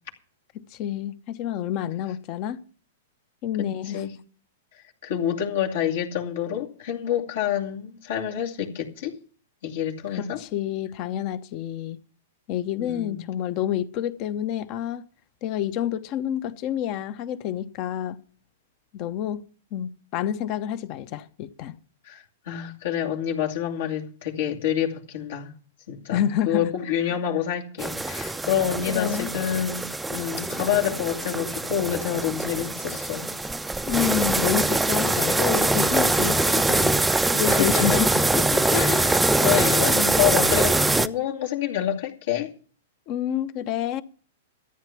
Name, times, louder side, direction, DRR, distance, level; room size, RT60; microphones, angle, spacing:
voice 1, 0.5-2.6 3.4-4.0 10.1-12.0 12.5-15.0 15.4-18.2 18.9-19.4 19.7-21.7 26.1-26.7 28.8-29.3 33.8-37.0 37.3-38.8 39.5-40.2 43.1-44.0, left 10 dB, 45° left, 1.0 m, -28 dB
voice 2, 3.6-4.1 5.0-9.2 9.6-10.4 12.8-13.2 22.0-25.5 25.9-33.3 37.5-38.0 38.7-42.5, left 10 dB, 70° left, 2.5 m, -28 dB
sound 1, 27.8-41.1, right 2 dB, 5° right, 0.6 m, -23 dB
14.0 x 9.1 x 6.0 m
hypercardioid pair, 115°, 0 cm